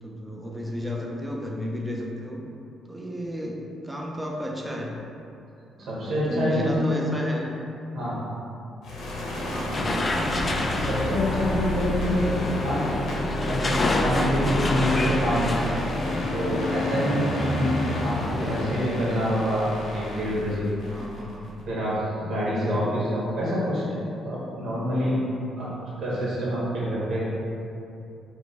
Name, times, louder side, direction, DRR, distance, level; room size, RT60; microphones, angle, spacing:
voice 1, 0.0-2.4 2.9-5.0 5.8-7.5 9.0-10.1 20.9-21.6 22.4-22.9, left 1 dB, 10° right, -1 dB, 0.6 m, -33 dB
voice 2, 5.8-7.1 7.9-8.2 10.7-12.3 12.6-12.9 13.4-15.6 16.3-17.8 18.0-20.7 21.7-24.0 24.2-25.2 25.6-25.7 26.0-27.2, equal, 65° right, -7 dB, 1.5 m, -26 dB
sound 1, 8.8-21.6, left 1 dB, 75° left, 0.9 m, -32 dB
sound 2, 9.7-18.7, left 2 dB, 30° left, 0.3 m, -28 dB
sound 3, 17.1-21.4, equal, 85° right, 0.5 m, -34 dB
4.7 x 2.3 x 4.1 m, 2.7 s
cardioid pair, 90°, 0 cm